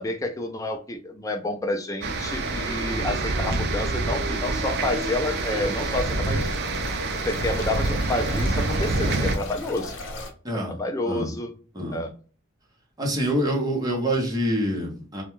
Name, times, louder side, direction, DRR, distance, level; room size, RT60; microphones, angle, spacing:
voice 1, 0.0-6.5 7.2-10.0 10.5-11.6 11.9-12.1, left 2 dB, 15° left, 0.4 m, -29 dB
sound 1, 2.0-9.4, right 2 dB, 55° right, 0.4 m, -26 dB
sound 2, 4.5-10.3, left 2 dB, 65° left, 0.6 m, -39 dB
voice 2, 10.4-10.8 11.0-11.3 11.7-12.0 13.0-15.2, equal, 20° right, 0.7 m, -26 dB
2.2 x 2.1 x 2.9 m
head